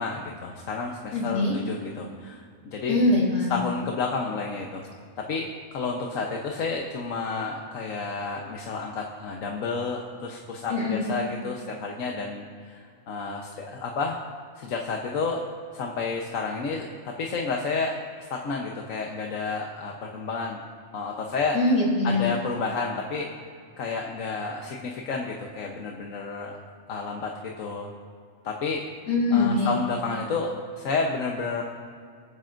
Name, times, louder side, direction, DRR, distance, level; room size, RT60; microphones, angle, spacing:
voice 1, 0.0-3.0 3.5-4.8 5.3-14.2 14.6-15.4 15.7-17.9 18.3-20.6 20.9-21.6 22.0-23.3 23.8-26.6 26.9-27.9 28.4-28.8 29.3-31.6, left 4 dB, 85° left, 1 dB, 1.4 m, -31 dB
voice 2, 1.1-1.6 2.9-3.5 10.7-11.0 21.5-22.3 29.1-29.7, left 2 dB, 70° left, -5 dB, 4.0 m, -23 dB
29.0 x 9.6 x 2.6 m, 2.2 s
omnidirectional pair, 1.3 m